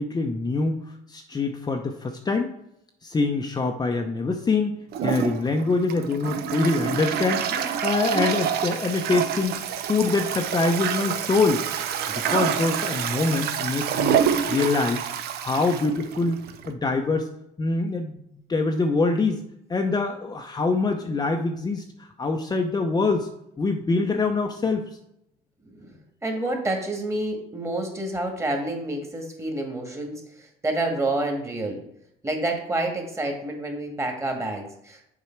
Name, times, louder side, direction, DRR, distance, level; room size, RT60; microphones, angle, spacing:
voice 1, 0.0-2.5 3.0-11.6 12.1-15.0 15.3-16.4 16.7-17.3 17.6-19.4 19.7-23.3 23.6-24.9, left 3 dB, 25° left, 3 dB, 0.7 m, -25 dB
Toilet flush, 4.9-16.7, right 8 dB, 70° right, 0.8 m, -27 dB
voice 2, 26.2-31.8 32.2-35.1, right 2 dB, 15° right, 2 dB, 1.9 m, -28 dB
7.2 x 4.7 x 4.5 m, 0.77 s
cardioid pair, 110°, 17 cm